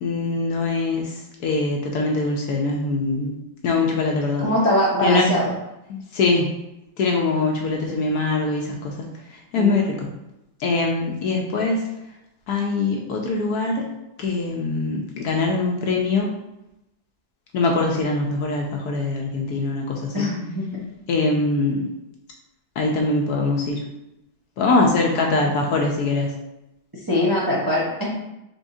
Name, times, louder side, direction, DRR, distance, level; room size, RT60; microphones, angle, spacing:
voice 1, 0.0-1.1 1.4-3.3 3.6-4.4 5.0-5.3 5.9-6.5 7.0-9.1 9.3-10.1 10.6-11.8 12.5-13.8 14.2-16.3 17.5-20.3 21.1-21.8 22.8-23.8 24.6-26.3, left 3 dB, 70° left, 0 dB, 1.0 m, -22 dB
voice 2, 4.4-5.5 9.5-9.8 20.1-20.7 25.2-25.6 27.1-28.2, left 1 dB, 30° right, -6 dB, 0.4 m, -22 dB
4.8 x 3.7 x 2.6 m, 0.90 s
omnidirectional pair, 2.0 m